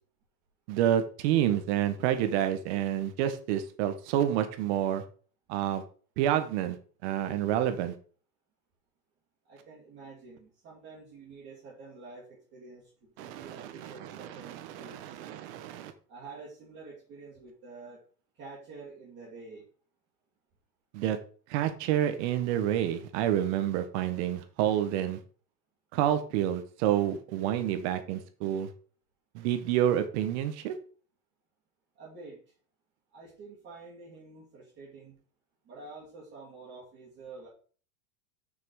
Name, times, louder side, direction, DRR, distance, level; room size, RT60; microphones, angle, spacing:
voice 1, 0.7-5.0 5.5-5.8 6.2-6.8 7.0-7.9 13.2-15.9 20.9-21.2 21.5-25.2 25.9-28.7 29.3-30.7, right 11 dB, 45° right, 9 dB, 1.2 m, -28 dB
voice 2, 9.5-15.2 16.1-18.0 18.3-19.6 31.9-32.4 33.1-35.2 35.6-37.5, right 3 dB, 20° right, -7 dB, 2.6 m, -48 dB
6.2 x 6.2 x 4.7 m, 0.42 s
supercardioid pair, 155°, 49 cm